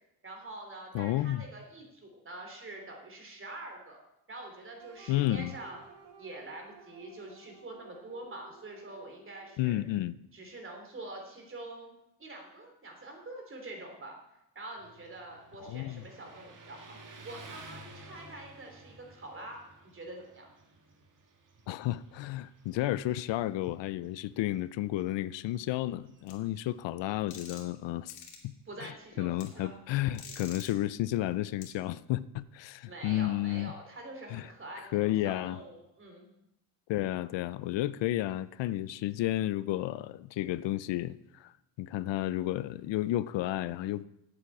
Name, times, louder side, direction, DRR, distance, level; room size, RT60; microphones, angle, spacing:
voice 1, 0.2-4.0 4.3-5.8 6.2-9.8 10.3-14.2 14.5-17.0 17.2-20.5 28.7-29.7 30.2-30.3 32.8-36.2, right 2 dB, 30° right, 2 dB, 3.3 m, -45 dB
voice 2, 0.9-1.4 5.1-5.6 9.6-10.2 15.6-16.0 21.7-28.5 28.8-33.7 34.3-34.5 34.8-35.6 36.9-44.0, left 15 dB, 80° left, 17 dB, 0.6 m, -32 dB
sound 1, 4.8-9.7, right 5 dB, 80° right, 1.6 m, -55 dB
Motorcycle, 14.8-27.4, right 2 dB, 45° right, 1.9 m, -54 dB
sound 2, 26.3-26.4 27.3-27.8 28.1-28.4 29.4-29.5 30.1-30.7 31.6-31.7, left 6 dB, 65° left, 2.7 m, -46 dB
8.4 x 8.1 x 8.5 m, 0.85 s
cardioid pair, 135°, 43 cm